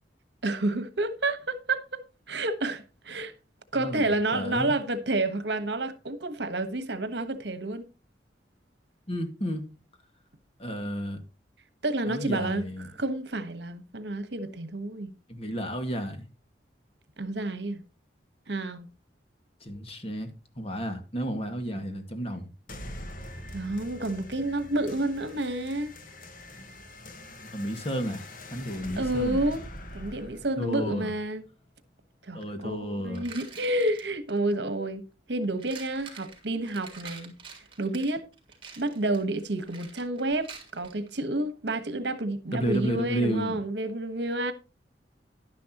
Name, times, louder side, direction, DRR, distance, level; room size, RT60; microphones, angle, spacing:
voice 1, 0.4-2.0 2.3-3.3 3.7-7.9 11.8-12.7 13.0-15.1 17.2-17.8 18.5-18.9 23.5-25.9 29.0-29.6 29.9-31.4 32.2-35.0 35.3-37.3 37.8-38.2 38.8-44.5, right 2 dB, 70° right, 1.3 m, -29 dB
voice 2, 3.8-4.7 9.1-9.7 10.6-11.2 12.1-12.9 15.3-16.2 19.6-20.3 20.6-22.5 27.4-29.4 30.6-31.1 32.3-33.3 42.5-43.6, equal, 35° left, 2.0 m, -32 dB
sound 1, 22.7-31.7, left 1 dB, 50° left, 1.6 m, -43 dB
sound 2, 32.4-32.5 33.1-34.6 35.4-41.1, right 5 dB, 30° right, 3.5 m, -47 dB
11.5 x 10.5 x 3.0 m
head